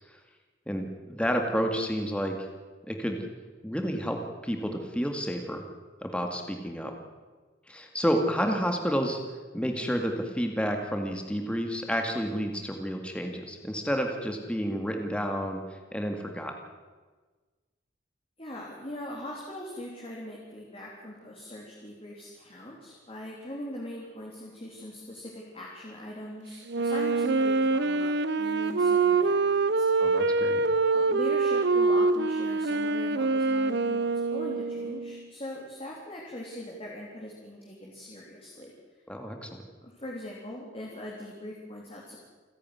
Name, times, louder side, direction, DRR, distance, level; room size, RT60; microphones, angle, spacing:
voice 1, 0.7-2.4 2.9-3.2 3.6-5.6 6.0-6.9 7.7-9.2 9.5-16.5 30.0-30.6 39.1-39.6, equal, 5° left, 4 dB, 2.1 m, -30 dB
voice 2, 18.4-30.3 30.9-38.7 39.8-42.2, left 1 dB, 30° left, -2 dB, 3.5 m, -41 dB
Wind instrument woodwind instrument, 26.7-35.2, right 3 dB, 65° right, 0.9 m, -25 dB
29.0 x 10.5 x 9.6 m, 1.3 s
head